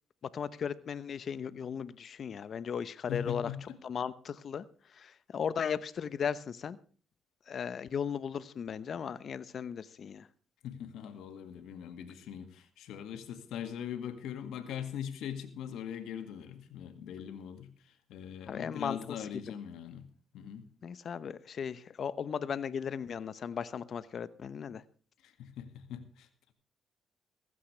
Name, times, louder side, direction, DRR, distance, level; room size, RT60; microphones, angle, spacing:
voice 1, 0.3-3.5 3.8-4.6 5.0-6.8 7.5-10.3 18.5-19.0 20.8-24.8, left 7 dB, 55° left, 16 dB, 0.9 m, -36 dB
voice 2, 3.1-3.7 10.6-20.1 20.3-20.7 25.2-26.5, left 9 dB, 85° left, 9 dB, 2.0 m, -41 dB
15.5 x 15.0 x 3.3 m, 0.40 s
cardioid pair, 90°, 0 cm